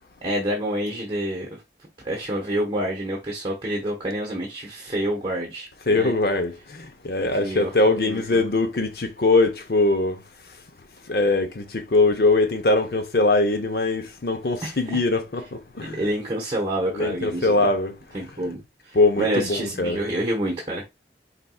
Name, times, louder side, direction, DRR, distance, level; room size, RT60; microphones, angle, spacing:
voice 1, 0.2-1.6 2.0-6.1 7.2-7.7 8.0-8.5 14.6-14.8 15.8-17.7 18.1-20.8, right 1 dB, 30° right, 1.1 m, -28 dB
voice 2, 5.9-10.2 11.1-16.0 16.9-17.9 18.9-20.0, left 2 dB, 60° left, 0.7 m, -22 dB
4.4 x 4.1 x 2.3 m
head